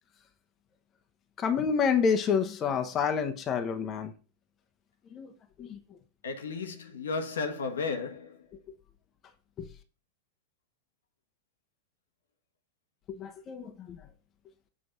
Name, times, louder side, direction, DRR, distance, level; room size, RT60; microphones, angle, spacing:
voice 1, 1.4-4.1 5.1-5.3 5.6-5.8 9.6-9.7 13.1-14.0, left 6 dB, 30° left, 0.9 m, -28 dB
voice 2, 6.2-8.4, left 4 dB, 65° left, 1.2 m, -34 dB
7.9 x 4.1 x 6.5 m
figure-of-eight pair, 90°, 0 cm